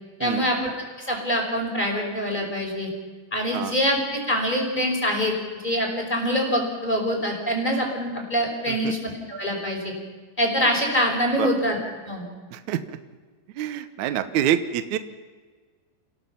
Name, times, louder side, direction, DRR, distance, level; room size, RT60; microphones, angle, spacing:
voice 1, 0.2-0.6 1.0-2.9 3.3-5.3 5.6-9.9 10.4-11.8 12.1-12.2, equal, 10° left, 1 dB, 5.2 m, -24 dB
voice 2, 12.5-13.0 13.6-15.0, right 10 dB, 80° right, 9 dB, 1.7 m, -26 dB
29.0 x 17.5 x 5.8 m, 1.5 s
omnidirectional pair, 4.9 m